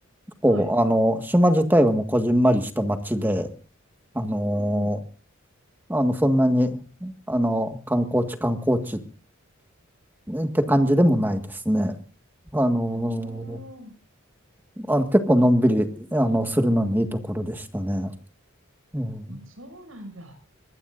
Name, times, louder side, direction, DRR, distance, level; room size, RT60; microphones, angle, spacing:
voice 1, 0.4-3.5 4.2-5.0 5.9-9.0 10.3-11.9 12.5-13.6 14.8-18.1 18.9-19.4, equal, 10° right, 6 dB, 1.6 m, -22 dB
voice 2, 4.5-5.0 12.9-13.9 19.1-20.3, equal, 90° right, 8 dB, 6.7 m, -42 dB
24.5 x 20.0 x 2.6 m, 0.38 s
head